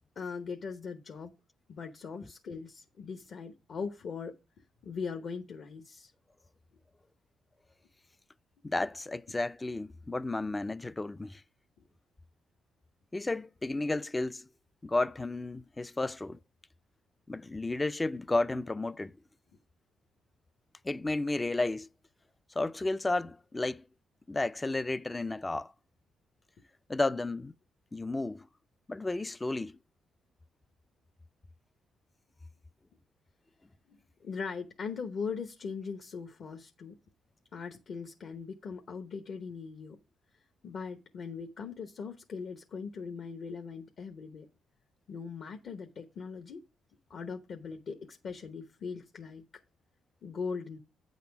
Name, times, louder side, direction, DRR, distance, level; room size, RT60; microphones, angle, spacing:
voice 1, 0.0-1.3 1.7-4.3 4.8-6.1 34.2-36.9 37.5-40.0 40.6-44.5 45.1-46.6 47.1-49.4 50.2-50.8, left 5 dB, 60° left, 0.9 m, -40 dB
voice 2, 8.6-11.4 13.1-14.5 14.8-16.4 17.3-19.1 20.8-21.9 22.6-23.8 24.3-25.7 26.9-27.5 27.9-28.5 28.9-29.8, left 2 dB, 20° left, 0.3 m, -32 dB
8.6 x 4.2 x 5.8 m
cardioid pair, 90°, 0 cm